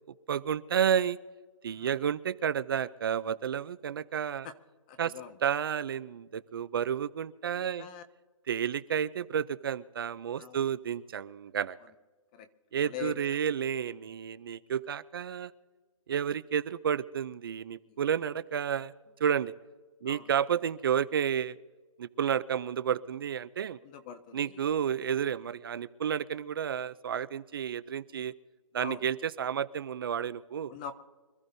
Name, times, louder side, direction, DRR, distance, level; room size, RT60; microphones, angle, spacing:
voice 1, 0.3-1.2 1.6-4.5 5.0-5.1 5.4-7.9 8.5-11.8 12.7-15.5 16.1-18.9 19.2-19.5 20.0-21.6 22.0-23.8 24.3-28.3 28.7-30.7, right 8 dB, 45° right, 15 dB, 0.5 m, -31 dB
voice 2, 4.9-5.4 7.5-8.0 10.3-10.7 12.3-12.5 12.8-13.4 17.9-18.0 20.0-20.3 23.8-24.7 28.8-29.0 30.7-31.0, left 9 dB, 15° left, 11 dB, 0.4 m, -43 dB
26.0 x 14.0 x 2.7 m, 1.4 s
hypercardioid pair, 165°, 17 cm